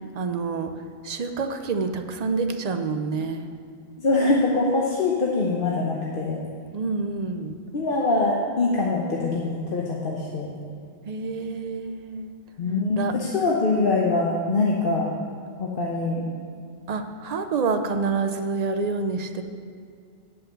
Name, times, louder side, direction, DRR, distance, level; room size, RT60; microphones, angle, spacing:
voice 1, 0.1-0.7 1.0-3.5 6.7-7.6 11.1-12.3 12.9-13.2 16.9-19.4, right 4 dB, 45° right, 7 dB, 0.6 m, -27 dB
voice 2, 4.0-6.4 7.7-10.5 12.6-15.1 15.6-16.2, left 3 dB, 55° left, -3 dB, 1.1 m, -23 dB
9.6 x 5.7 x 6.9 m, 2.3 s
omnidirectional pair, 1.2 m